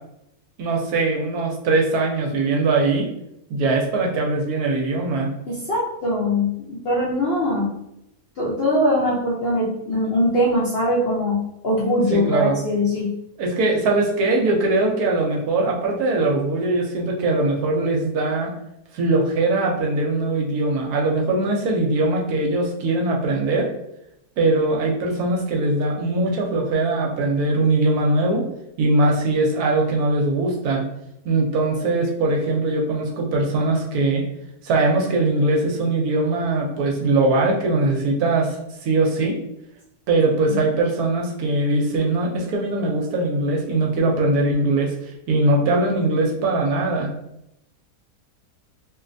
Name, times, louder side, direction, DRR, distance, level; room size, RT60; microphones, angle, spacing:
voice 1, 0.6-3.1 3.5-5.3 11.8-12.6 13.4-18.5 18.9-23.7 24.4-28.4 28.8-30.8 31.2-34.2 34.6-38.6 38.8-39.4 40.1-44.9 45.3-47.1, right 2 dB, 70° right, 0 dB, 1.1 m, -21 dB
voice 2, 5.5-7.7 8.4-11.4 11.6-13.1, left 1 dB, 60° left, -7 dB, 0.6 m, -21 dB
3.0 x 2.8 x 2.5 m, 0.82 s
omnidirectional pair, 1.7 m